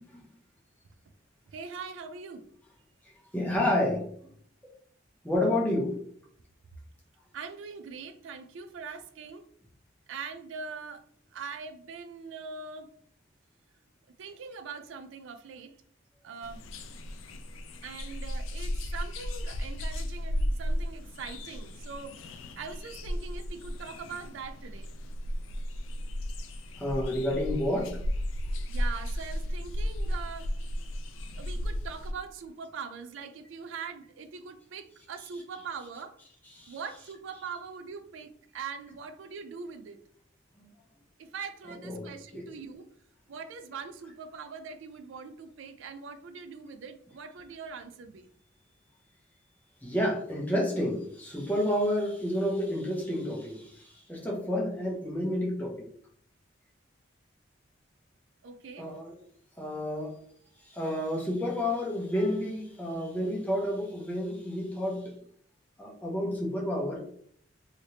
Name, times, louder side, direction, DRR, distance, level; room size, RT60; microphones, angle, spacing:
voice 1, 1.5-2.5 7.3-9.4 10.1-11.0 11.3-12.9 14.2-15.8 16.2-16.6 17.8-22.2 22.6-24.9 28.7-30.5 31.4-36.2 36.7-40.0 41.2-42.9 43.3-48.3 58.4-58.9, right 5 dB, 75° right, 8 dB, 0.4 m, -42 dB
voice 2, 3.3-4.1 5.2-6.0 26.8-28.0 31.3-31.6 35.2-35.6 36.4-37.0 40.6-40.7 41.8-42.1 42.3-42.4 49.8-55.9 58.8-59.2 59.6-60.1 60.6-65.1 65.8-67.0, left 1 dB, 10° left, -2 dB, 0.7 m, -30 dB
sound 1, 16.4-32.1, equal, 85° left, 0.4 m, -34 dB
3.2 x 2.8 x 2.8 m, 0.62 s
head